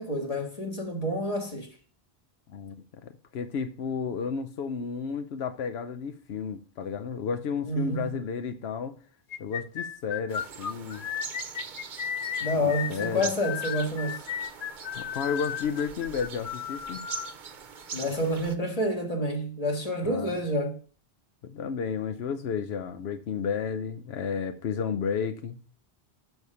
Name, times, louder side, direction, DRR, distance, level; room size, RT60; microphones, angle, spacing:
voice 1, 0.0-1.8 7.7-8.1 12.4-14.2 17.9-20.8, equal, 35° left, 1.9 m, -28 dB
voice 2, 3.0-9.0 9.4-11.1 12.6-13.3 14.9-17.0 20.0-20.3 21.4-25.6, left 6 dB, 90° left, 1.0 m, -32 dB
sound 1, 9.3-17.3, left 9 dB, 60° left, 0.7 m, -34 dB
sound 2, 10.3-18.6, right 6 dB, 55° right, 0.9 m, -42 dB
6.8 x 6.3 x 5.4 m
omnidirectional pair, 1.0 m